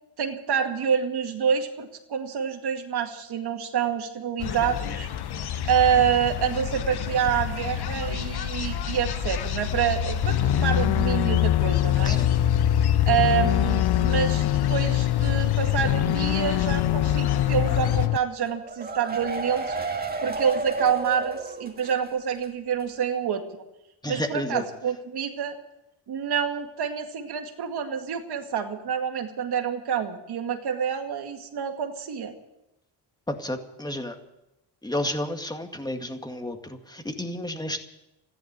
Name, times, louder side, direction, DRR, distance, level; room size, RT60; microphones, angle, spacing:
voice 1, 0.2-5.1 5.6-12.2 13.1-19.8 20.2-23.4 24.1-25.6 26.1-32.3, right 8 dB, 70° right, 5 dB, 2.2 m, -27 dB
sound 1, 4.4-18.1, left 9 dB, 70° left, 1.1 m, -27 dB
sound 2, 10.2-18.2, left 16 dB, 85° left, 0.5 m, -25 dB
sound 3, 18.4-22.1 22.4-22.5 22.8-22.9, right 3 dB, 20° right, 2.2 m, -31 dB
voice 2, 24.0-24.6 33.3-34.2 34.8-37.8, left 1 dB, 10° left, 5 dB, 2.0 m, -31 dB
14.5 x 10.5 x 9.3 m, 0.91 s
cardioid pair, 95°, 40 cm